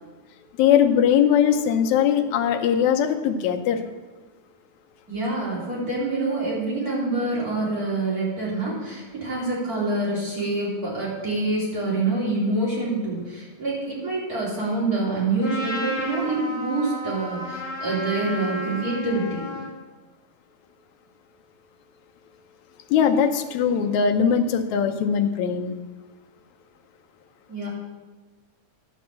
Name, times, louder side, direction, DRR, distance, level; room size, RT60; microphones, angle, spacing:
voice 1, 0.6-3.8 22.9-25.8, left 8 dB, 75° left, 7 dB, 2.1 m, -20 dB
voice 2, 5.1-19.5 27.5-27.7, right 2 dB, 30° right, -6 dB, 4.1 m, -26 dB
Trumpet, 15.4-19.7, left 1 dB, 25° left, 2.7 m, -32 dB
11.0 x 5.9 x 7.5 m, 1.3 s
omnidirectional pair, 3.4 m